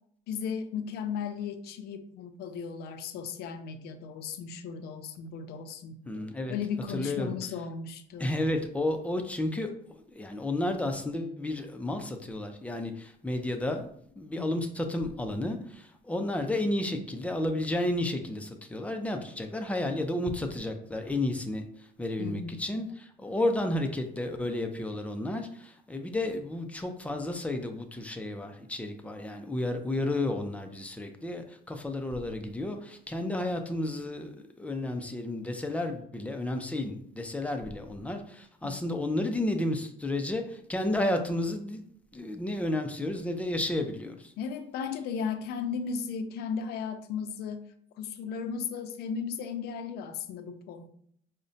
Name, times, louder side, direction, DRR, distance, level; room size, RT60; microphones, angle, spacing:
voice 1, 0.3-6.0 6.5-8.4 14.4-14.7 22.2-22.7 33.2-33.4 38.6-38.8 44.4-47.7 48.0-50.9, left 6 dB, 75° left, 9 dB, 0.4 m, -36 dB
voice 2, 6.1-6.6 6.9-7.3 8.2-13.9 14.2-41.8 42.1-44.3, left 1 dB, 10° left, 5 dB, 0.4 m, -32 dB
4.8 x 2.1 x 2.6 m, 0.65 s
cardioid pair, 110°, 17 cm